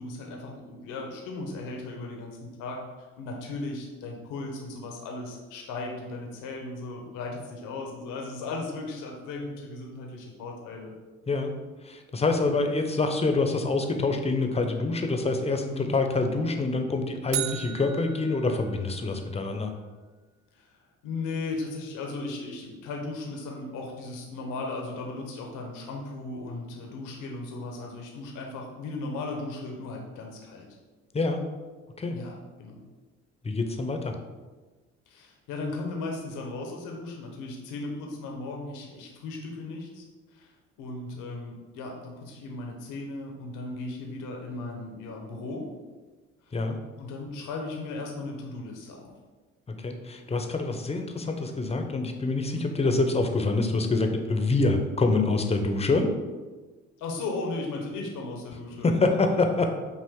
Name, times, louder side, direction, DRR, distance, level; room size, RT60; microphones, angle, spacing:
voice 1, 0.0-10.9 12.4-12.5 15.6-15.9 20.5-20.8 21.0-30.7 32.1-32.8 35.1-40.0 40.3-40.5 40.8-45.6 46.4-46.6 47.0-49.1 52.4-52.7 57.0-58.9, left 3 dB, 75° left, 1 dB, 0.8 m, -36 dB
voice 2, 11.8-19.7 31.1-31.4 32.0-32.2 33.4-34.1 46.5-46.8 49.8-56.1 58.8-59.7, left 3 dB, 20° left, 5 dB, 0.6 m, -26 dB
sound 1, 17.3-19.5, right 11 dB, 60° right, 0.4 m, -36 dB
5.4 x 2.5 x 3.5 m, 1.3 s
supercardioid pair, 60°, 31 cm